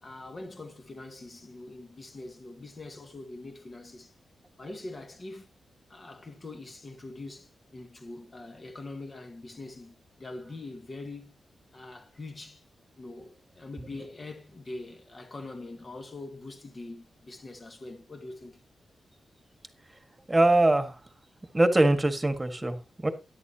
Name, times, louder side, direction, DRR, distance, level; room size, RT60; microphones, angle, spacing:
voice 1, 0.0-4.1 4.6-5.5 5.9-11.4 11.7-12.6 13.0-18.6, left 2 dB, 35° left, 2.0 m, -43 dB
voice 2, 20.3-21.0 21.5-23.1, right 2 dB, 15° right, 1.7 m, -23 dB
13.5 x 11.0 x 2.9 m
cardioid pair, 100°, 0 cm